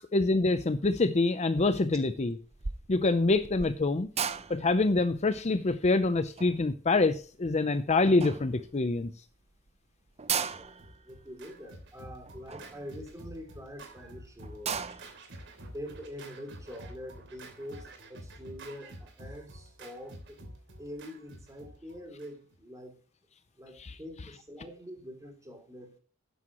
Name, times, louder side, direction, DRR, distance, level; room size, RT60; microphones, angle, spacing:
voice 1, 0.1-2.4 2.9-4.1 4.5-9.1 23.8-23.9, left 3 dB, 35° left, 11 dB, 0.6 m, -26 dB
sound 1, 1.5-1.9 2.2-7.7 8.2-9.0 9.4-9.5 9.7-9.8 10.1-13.7 14.1-14.2 14.4-15.2, right 6 dB, 30° right, 0.7 m, -37 dB
voice 2, 10.4-14.8 15.6-20.4 20.8-23.0 23.6-26.0, equal, 15° right, 4 dB, 2.9 m, -45 dB
Scratching (performance technique), 10.5-22.6, right 1 dB, 60° right, 3.1 m, -49 dB
12.0 x 9.8 x 3.0 m, 0.37 s
head